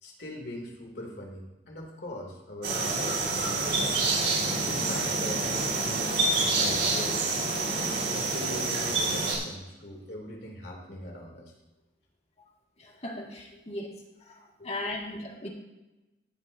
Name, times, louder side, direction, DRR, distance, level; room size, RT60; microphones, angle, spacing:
voice 1, 0.0-4.0 4.6-7.3 7.7-11.5 13.5-13.6 14.6-14.7, left 1 dB, 65° left, -1 dB, 2.8 m, -41 dB
sound 1, 2.6-9.4, right 3 dB, 65° right, 4.7 m, -27 dB
voice 2, 12.8-13.9 14.3-14.4 14.6-15.5, left 1 dB, 35° left, 0 dB, 1.9 m, -37 dB
18.5 x 8.8 x 2.7 m, 1.0 s
head